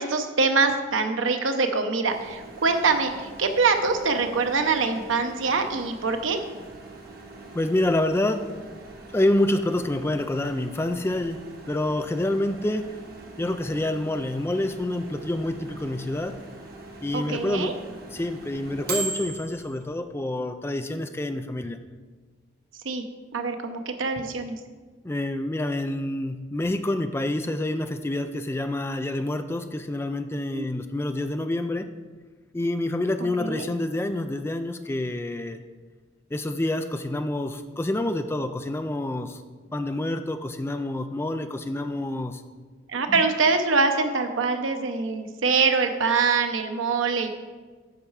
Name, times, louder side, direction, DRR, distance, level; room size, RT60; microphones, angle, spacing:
voice 1, 0.0-6.4 17.1-17.7 22.8-23.0 23.3-24.6 30.5-30.6 33.4-33.7 42.9-47.3, right 4 dB, 85° right, 6 dB, 0.8 m, -24 dB
Microwave oven, 2.1-19.9, right 3 dB, 50° right, 1.2 m, -41 dB
voice 2, 7.5-8.5 9.1-11.4 11.7-12.9 13.4-16.4 17.0-21.8 25.0-31.9 32.5-35.6 36.3-39.4 39.7-42.4, left 1 dB, 15° left, 8 dB, 0.3 m, -27 dB
8.7 x 5.7 x 4.7 m, 1.4 s
head